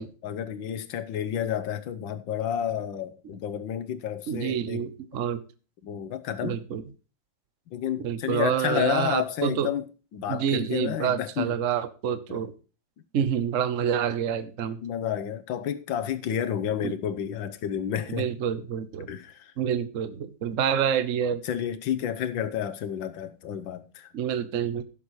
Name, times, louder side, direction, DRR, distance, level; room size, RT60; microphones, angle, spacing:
voice 1, 0.0-4.9 5.8-6.6 7.7-11.5 12.3-12.4 14.8-18.3 19.1-19.5 21.4-24.1, left 9 dB, 80° left, 1.7 m, -30 dB
voice 2, 4.3-5.4 6.4-6.8 8.0-9.7 10.3-12.5 13.1-14.8 16.8-16.9 18.1-19.1 19.6-21.4 24.1-24.8, right 8 dB, 55° right, 1.0 m, -27 dB
16.5 x 7.2 x 3.1 m
omnidirectional pair, 2.1 m